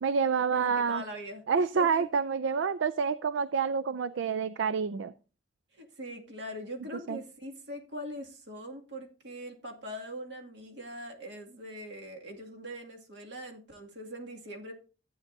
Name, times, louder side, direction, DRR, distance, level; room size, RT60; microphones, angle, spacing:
voice 1, 0.0-1.0 1.5-5.1 7.1-7.2, right 6 dB, 85° right, 16 dB, 0.4 m, -28 dB
voice 2, 0.5-1.4 1.7-2.0 5.7-14.7, equal, 65° right, 1 dB, 2.3 m, -42 dB
14.0 x 9.1 x 2.7 m, 0.36 s
head